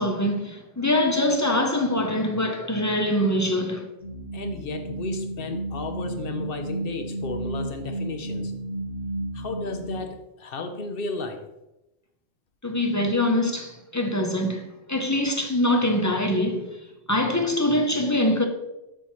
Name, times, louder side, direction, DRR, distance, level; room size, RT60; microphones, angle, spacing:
voice 1, 0.0-3.9 12.6-14.6 14.9-16.8 17.1-18.5, left 1 dB, 20° left, 0.6 m, -23 dB
sound 1, 4.0-10.0, right 1 dB, 80° left, 2.0 m, -32 dB
voice 2, 4.3-8.5 9.3-11.5, left 3 dB, 55° left, 1.0 m, -33 dB
12.5 x 4.5 x 3.1 m
omnidirectional pair, 1.2 m